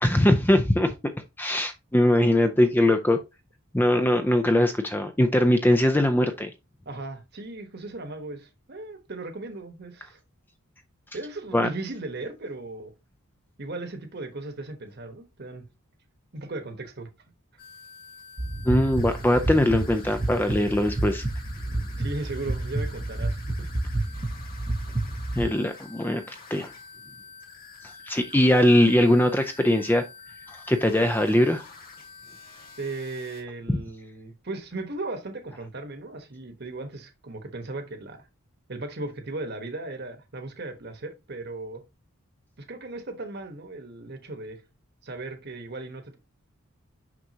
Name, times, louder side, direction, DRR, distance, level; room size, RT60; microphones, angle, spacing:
voice 1, 0.0-1.1 1.4-3.2 3.7-6.5 11.5-11.7 18.6-21.2 25.3-26.2 26.5-26.7 27.8-30.0 30.5-31.6, left 1 dB, 10° left, 0.4 m, -21 dB
voice 2, 6.8-10.2 11.1-12.9 13.6-15.6 16.3-17.1 21.7-23.7 23.9-24.2 32.8-38.2 38.7-41.8 42.6-44.6 45.0-46.2, right 2 dB, 45° right, 1.2 m, -37 dB
sound 1, 17.6-33.4, left 4 dB, 40° left, 1.9 m, -47 dB
sound 2, 18.4-25.5, right 2 dB, 25° right, 0.7 m, -30 dB
6.1 x 5.9 x 2.8 m
head